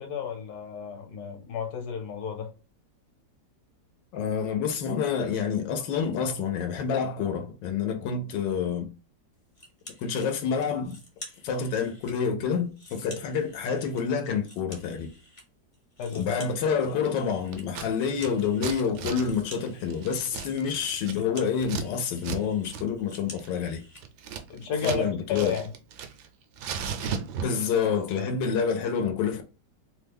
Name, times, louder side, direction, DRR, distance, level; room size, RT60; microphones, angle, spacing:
voice 1, 0.0-2.5 16.0-16.5 24.5-25.7, left 6 dB, 65° left, 1.3 m, -33 dB
voice 2, 4.1-8.9 10.0-11.0 11.4-15.1 16.1-23.8 24.8-25.5 27.0-27.1 27.4-29.4, left 6 dB, 85° left, 1.3 m, -28 dB
sound 1, 9.5-10.3 10.6-12.2 12.5-15.4 15.7-24.0, left 1 dB, 40° left, 0.4 m, -49 dB
Scissors, 17.5-17.9 18.1-21.9 22.2-22.4 22.7-22.8 23.2-25.0 25.3-26.3 26.6-27.7, right 6 dB, 75° right, 1.1 m, -35 dB
3.1 x 2.1 x 3.3 m
omnidirectional pair, 1.9 m